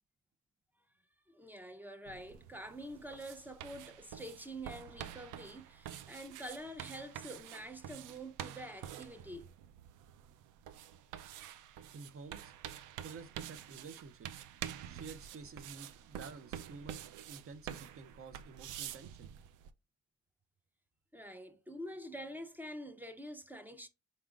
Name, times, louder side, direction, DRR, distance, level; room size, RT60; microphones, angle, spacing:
voice 1, 1.3-9.5 21.1-23.9, right 1 dB, 5° right, 0.5 m, -46 dB
sound 1, 2.1-19.7, right 10 dB, 85° right, 0.4 m, -48 dB
voice 2, 11.9-12.5 13.0-14.4 14.8-17.0 17.3-19.3, right 4 dB, 45° right, 0.7 m, -51 dB
4.2 x 3.6 x 2.4 m
cardioid pair, 90°, 30 cm